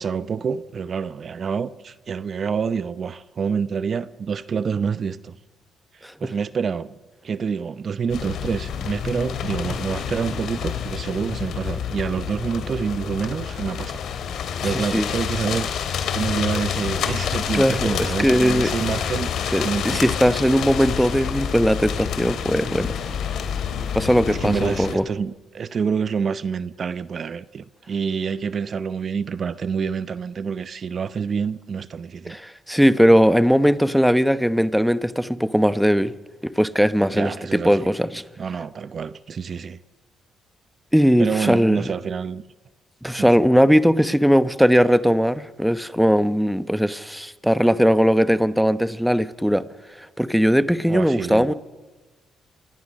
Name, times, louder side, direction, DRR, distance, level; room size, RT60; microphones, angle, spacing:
voice 1, 0.0-5.4 5.9-14.0 14.6-15.7 16.1-20.1 24.3-32.4 37.2-37.9 38.4-39.8 41.2-42.4 43.2-43.3 50.9-51.5, right 6 dB, 45° right, 0.7 m, -27 dB
sound 1, 8.1-25.0, left 7 dB, 75° left, 3.0 m, -28 dB
voice 2, 14.7-15.1 17.5-18.7 19.5-22.9 23.9-25.1 32.3-36.1 36.4-38.2 40.9-41.8 43.0-49.7 50.0-51.5, equal, ahead, 0.9 m, -19 dB
26.5 x 20.0 x 6.4 m
cardioid pair, 90°, 0 cm